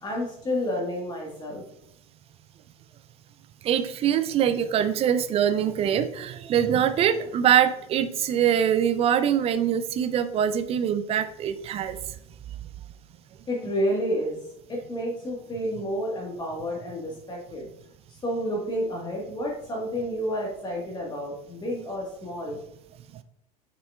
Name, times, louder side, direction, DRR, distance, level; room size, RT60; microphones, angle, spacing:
voice 1, 0.0-1.6 13.5-14.4 14.7-17.7 18.1-22.6, equal, 20° left, -2 dB, 1.4 m, -30 dB
voice 2, 3.6-12.0, right 9 dB, 30° right, 12 dB, 0.5 m, -23 dB
6.7 x 6.3 x 2.3 m, 0.78 s
figure-of-eight pair, 75°, 20 cm